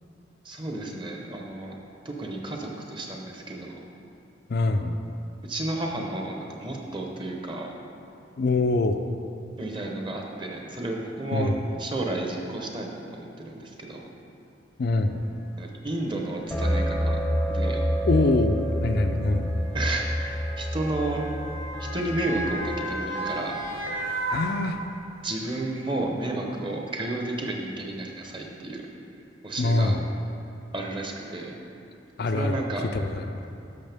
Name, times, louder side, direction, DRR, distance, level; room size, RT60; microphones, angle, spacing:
voice 1, 0.4-1.8 2.0-3.8 5.4-7.7 9.6-14.1 15.6-17.2 17.5-17.8 19.7-21.3 21.8-23.6 25.2-28.8 29.4-30.0 30.7-31.5 32.3-32.9, right 2 dB, 25° right, 1 dB, 0.9 m, -32 dB
voice 2, 4.5-5.0 8.4-9.0 11.3-11.6 14.8-15.2 18.1-19.5 24.3-24.8 29.6-30.0 32.2-32.6 32.9-33.4, left 2 dB, 55° left, 6 dB, 0.4 m, -24 dB
Motor vehicle (road) / Siren, 15.2-15.3 16.3-16.5 17.6-25.2 25.6-25.7, right 1 dB, 50° right, 2.0 m, -35 dB
sound 1, 16.5-23.0, equal, 5° left, 0.7 m, -28 dB
12.0 x 6.2 x 3.5 m, 2.7 s
head